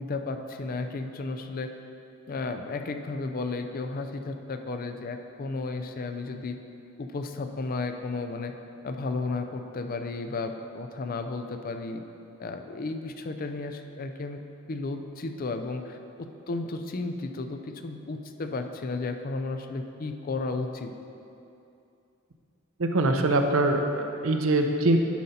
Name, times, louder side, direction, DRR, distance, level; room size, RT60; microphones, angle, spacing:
voice 1, 0.0-1.7 2.3-6.6 7.0-8.5 8.8-12.0 12.4-14.4 14.7-20.9, left 3 dB, 45° left, 7 dB, 0.4 m, -33 dB
voice 2, 22.8-25.0, right 2 dB, 70° right, 5 dB, 0.7 m, -23 dB
10.5 x 5.3 x 4.2 m, 2.7 s
head